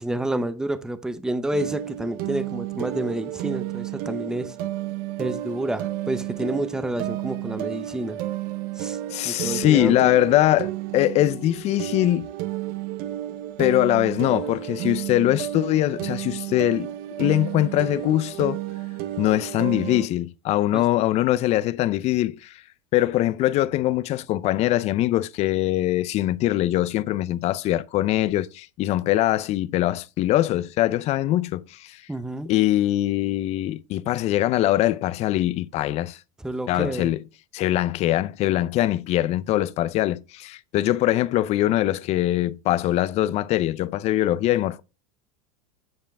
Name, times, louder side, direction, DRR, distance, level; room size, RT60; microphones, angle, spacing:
voice 1, 0.0-4.5 5.2-8.2 8.8-9.0 9.2-10.1 20.7-20.9 32.1-32.5 36.4-37.1, right 1 dB, 5° right, 0.6 m, -29 dB
sound 1, 1.5-20.1, right 14 dB, 55° right, 0.9 m, -32 dB
voice 2, 9.1-12.3 13.6-16.9 17.2-18.6 19.2-22.5 22.9-32.0 32.5-36.2 36.7-37.2 37.5-44.8, left 14 dB, 40° left, 0.5 m, -22 dB
9.3 x 5.1 x 3.5 m
supercardioid pair, 130°, 18 cm